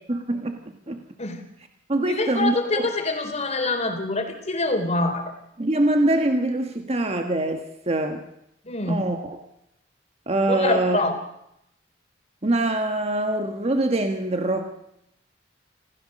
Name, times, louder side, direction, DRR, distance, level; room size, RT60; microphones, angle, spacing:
voice 1, 0.1-0.6 0.9-1.0 1.9-2.8 5.6-8.3 8.9-9.4 10.3-11.1 12.4-14.7, right 1 dB, 35° right, 5 dB, 1.5 m, -24 dB
voice 2, 2.1-5.3 8.6-9.0 10.5-11.2, left 2 dB, 35° left, 5 dB, 3.5 m, -25 dB
27.0 x 15.5 x 6.6 m, 0.79 s
head